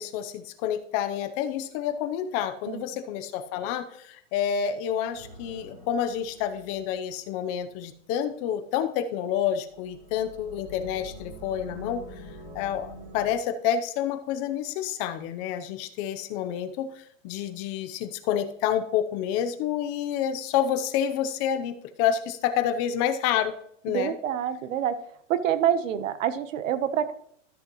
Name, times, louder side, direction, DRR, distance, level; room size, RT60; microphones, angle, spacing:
voice 1, 0.0-12.0 12.5-23.5 23.8-24.1, left 9 dB, 30° left, 10 dB, 0.6 m, -28 dB
sound 1, 5.1-7.9 9.5-13.3, left 1 dB, 45° right, 3.8 m, -45 dB
voice 2, 23.9-25.0 25.3-27.1, right 10 dB, 80° right, 12 dB, 1.0 m, -26 dB
13.0 x 6.3 x 3.0 m, 0.67 s
supercardioid pair, 165°, 38 cm